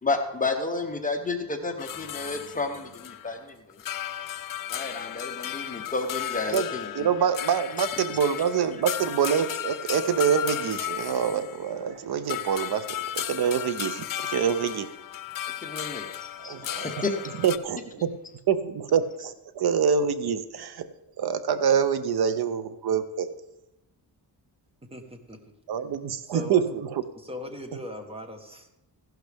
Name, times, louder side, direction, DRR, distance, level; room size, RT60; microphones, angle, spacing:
voice 1, 0.0-3.8 4.7-7.1 15.6-16.1 16.4-16.5 16.8-17.2, left 3 dB, 20° left, 3 dB, 0.9 m, -31 dB
sound 1, 1.8-3.4 3.7-11.9 12.3-17.6, left 11 dB, 55° left, 0.5 m, -35 dB
voice 2, 6.9-14.9 16.4-16.9 17.4-17.8 18.5-20.9 21.2-23.3 25.7-26.6, right 7 dB, 65° right, 12 dB, 0.7 m, -26 dB
voice 3, 24.8-25.4 26.2-26.6 27.1-28.7, left 2 dB, 15° right, 5 dB, 1.2 m, -39 dB
15.5 x 11.5 x 3.5 m, 0.94 s
wide cardioid pair, 160°, 41 cm